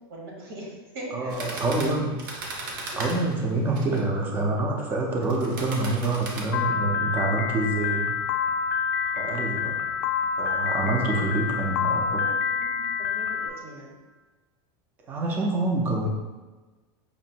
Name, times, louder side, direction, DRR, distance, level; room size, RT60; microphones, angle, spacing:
voice 1, 0.1-2.1 12.2-12.3 12.6-12.8 13.1-13.9, right 1 dB, 80° right, -2 dB, 1.3 m, -40 dB
voice 2, 1.1-2.1 3.0-8.2 9.0-9.8 10.4-12.3 15.1-16.1, right 2 dB, 15° right, 1 dB, 0.4 m, -26 dB
sound 1, 1.3-4.0 5.2-6.4, right 2 dB, 55° right, 0.7 m, -37 dB
Piano, 6.5-13.5, left 6 dB, 60° left, 0.4 m, -27 dB
5.2 x 2.5 x 2.8 m, 1.2 s
supercardioid pair, 175°, 13 cm